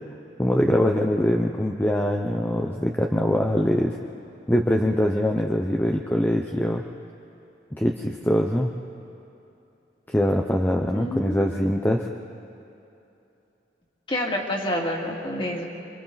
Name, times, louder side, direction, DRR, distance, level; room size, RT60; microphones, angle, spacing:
voice 1, 0.4-3.9 4.5-6.8 7.8-8.7 10.1-12.1, equal, 10° left, 2 dB, 0.7 m, -23 dB
voice 2, 10.9-11.5 14.1-15.6, left 1 dB, 30° left, -1 dB, 2.5 m, -28 dB
27.5 x 24.5 x 4.1 m, 2.8 s
head